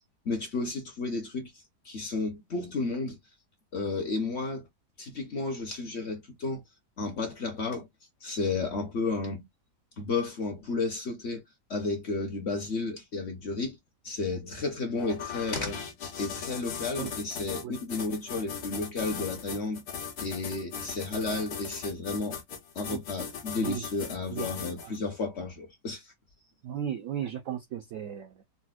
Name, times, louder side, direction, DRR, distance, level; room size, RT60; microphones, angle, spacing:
voice 1, 0.3-1.5 1.8-3.2 3.7-4.7 5.0-6.6 7.0-7.9 8.2-9.4 10.0-11.4 11.7-13.8 14.0-15.8 16.2-19.8 20.2-22.4 22.7-26.1, left 3 dB, 50° left, 0.9 m, -32 dB
sound 1, 15.0-25.0, left 7 dB, 70° left, 1.3 m, -39 dB
voice 2, 26.6-28.4, right 10 dB, 70° right, 0.8 m, -35 dB
4.2 x 2.1 x 2.3 m
omnidirectional pair, 1.8 m